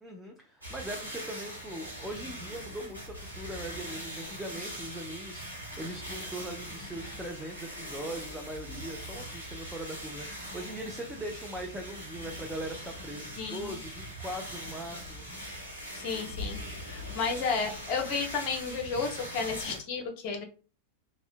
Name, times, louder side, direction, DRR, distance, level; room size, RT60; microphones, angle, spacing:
voice 1, 0.0-15.3, right 1 dB, 5° right, 0 dB, 0.4 m, -40 dB
sound 1, 0.6-19.8, equal, 90° right, 0.9 m, -41 dB
voice 2, 13.4-13.8 15.9-16.6 16.8-20.4, left 5 dB, 40° left, 4 dB, 0.6 m, -32 dB
2.7 x 2.1 x 2.4 m, 0.35 s
figure-of-eight pair, 90°, 0 cm